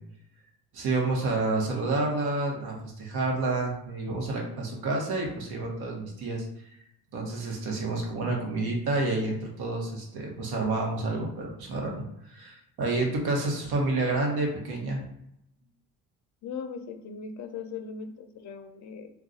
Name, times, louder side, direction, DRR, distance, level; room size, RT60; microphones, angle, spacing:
voice 1, 0.7-6.7 7.1-15.0, right 2 dB, 70° right, 0 dB, 1.1 m, -29 dB
voice 2, 16.4-19.1, left 5 dB, 50° left, 6 dB, 0.5 m, -39 dB
2.3 x 2.3 x 3.9 m, 0.78 s
supercardioid pair, 80°, 39 cm